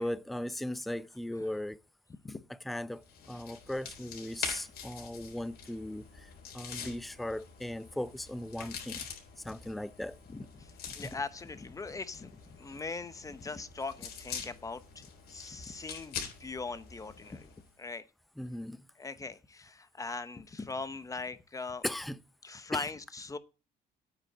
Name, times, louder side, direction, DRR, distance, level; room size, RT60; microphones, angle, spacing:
voice 1, 0.0-1.8 2.7-9.1 9.4-10.2 18.4-18.9 21.8-22.2 22.7-22.8, left 1 dB, ahead, 0.5 m, -38 dB
sound 1, 3.0-17.7, left 7 dB, 70° left, 3.9 m, -45 dB
voice 2, 10.3-18.0 19.0-21.8 22.4-23.4, left 3 dB, 20° left, 0.9 m, -41 dB
9.1 x 6.3 x 8.4 m
cardioid pair, 110°, 17 cm